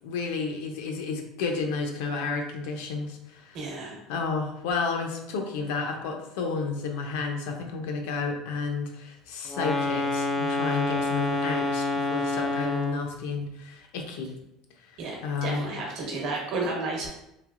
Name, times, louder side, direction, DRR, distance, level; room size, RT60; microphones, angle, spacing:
voice 1, 0.0-3.6 4.1-14.3 14.9-15.7, left 4 dB, 90° left, 3 dB, 0.5 m, -31 dB
voice 2, 3.5-4.0 15.0-17.1, right 3 dB, 55° right, -1 dB, 1.0 m, -32 dB
sound 1, 9.5-13.1, left 2 dB, 15° left, 0.3 m, -27 dB
3.2 x 2.9 x 2.4 m, 0.84 s
cardioid pair, 170°, 0 cm